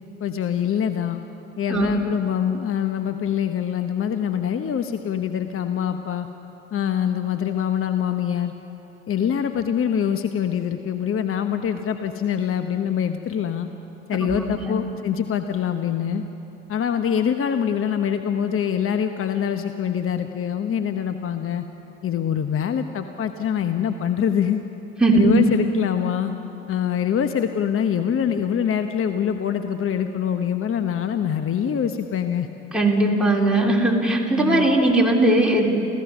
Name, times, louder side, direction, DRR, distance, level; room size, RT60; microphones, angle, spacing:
voice 1, 0.2-1.2 1.6-6.3 6.7-8.5 9.1-13.7 14.1-16.2 16.7-21.6 22.0-24.6 25.1-26.3 26.7-32.5 34.4-34.8, left 8 dB, 35° left, 8 dB, 1.1 m, -24 dB
voice 2, 14.3-14.7 25.0-25.3 32.7-35.7, right 2 dB, ahead, -2 dB, 4.0 m, -19 dB
29.5 x 15.0 x 6.2 m, 2.9 s
hypercardioid pair, 60°, 37 cm